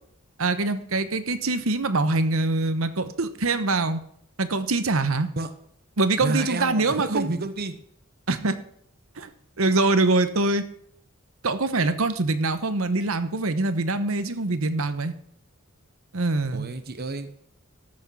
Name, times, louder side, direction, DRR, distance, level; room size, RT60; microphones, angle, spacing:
voice 1, 0.4-4.0 4.4-5.3 6.0-7.3 8.3-8.6 9.2-9.3 9.6-10.7 11.4-15.1 16.1-16.7, right 2 dB, 75° right, 11 dB, 1.1 m, -24 dB
voice 2, 6.2-7.8 16.5-17.3, right 2 dB, 45° right, 9 dB, 0.9 m, -30 dB
14.0 x 6.4 x 6.2 m, 0.68 s
head